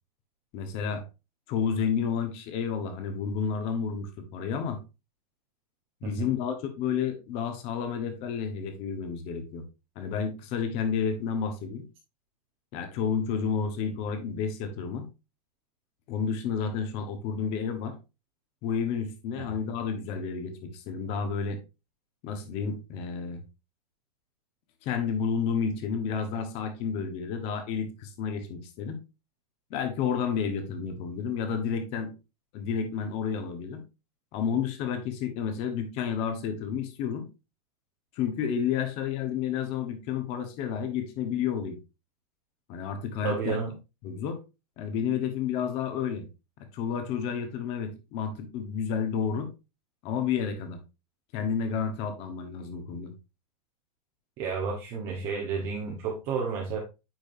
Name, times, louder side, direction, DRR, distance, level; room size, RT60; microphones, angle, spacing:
voice 1, 0.5-1.0 1.5-4.8 6.0-9.7 9.9-11.9 12.7-15.1 16.1-17.9 18.6-21.6 22.2-23.4 24.8-29.0 29.7-32.1 32.5-33.8 34.3-37.3 38.2-41.8 42.7-43.6 44.0-44.4 44.8-46.2 46.7-49.5 50.0-50.8 51.3-53.1, left 6 dB, 30° left, 7 dB, 1.3 m, -30 dB
voice 2, 43.2-43.7 54.4-56.8, right 5 dB, 30° right, -1 dB, 1.2 m, -31 dB
8.9 x 5.0 x 2.7 m, 0.27 s
supercardioid pair, 165°, 20 cm